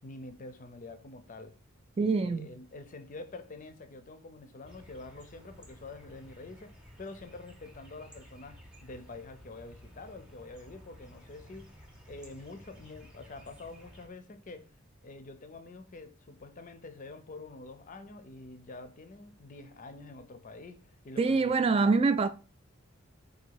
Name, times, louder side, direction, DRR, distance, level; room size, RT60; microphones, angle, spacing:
voice 1, 0.0-1.6 2.0-11.8 12.1-14.7 15.0-22.0, left 3 dB, 40° left, 0.5 m, -47 dB
voice 2, 2.0-2.5 21.2-22.3, right 4 dB, 25° right, 0.3 m, -25 dB
sound 1, 4.7-14.1, equal, 5° right, 0.8 m, -54 dB
4.0 x 2.6 x 4.6 m
head